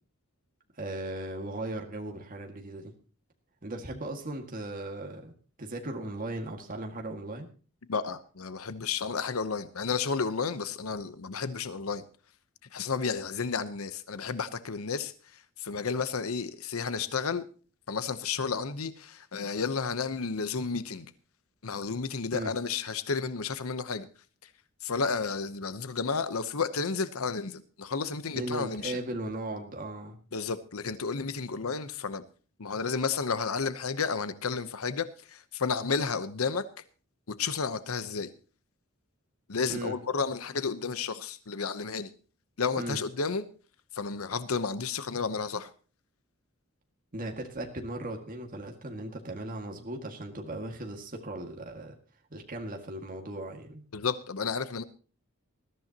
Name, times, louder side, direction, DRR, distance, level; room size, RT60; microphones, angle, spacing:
voice 1, 0.8-2.9 3.6-5.3 5.6-7.5 22.3-22.5 28.3-30.2 39.7-40.0 42.8-43.0 47.1-51.9 52.3-53.8, right 1 dB, 40° right, 2 dB, 2.0 m, -37 dB
voice 2, 7.9-12.0 12.7-17.4 17.9-21.1 21.6-24.1 24.8-29.0 30.3-32.2 32.6-36.7 37.3-38.3 39.5-42.1 42.6-43.4 43.9-45.7 53.9-54.8, left 5 dB, 85° left, 12 dB, 0.9 m, -32 dB
20.5 x 14.0 x 2.9 m, 0.39 s
head